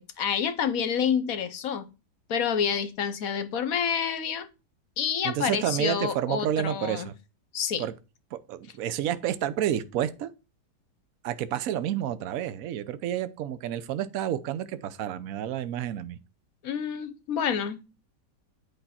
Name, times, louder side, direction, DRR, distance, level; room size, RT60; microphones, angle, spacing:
voice 1, 0.0-1.8 2.3-4.5 5.0-7.1 7.5-7.9 16.6-17.8, left 7 dB, 60° left, 1.2 m, -28 dB
voice 2, 5.2-7.1 7.8-7.9 8.3-10.3 11.2-16.2, right 11 dB, 65° right, 1.0 m, -30 dB
8.4 x 5.5 x 4.2 m
omnidirectional pair, 1.8 m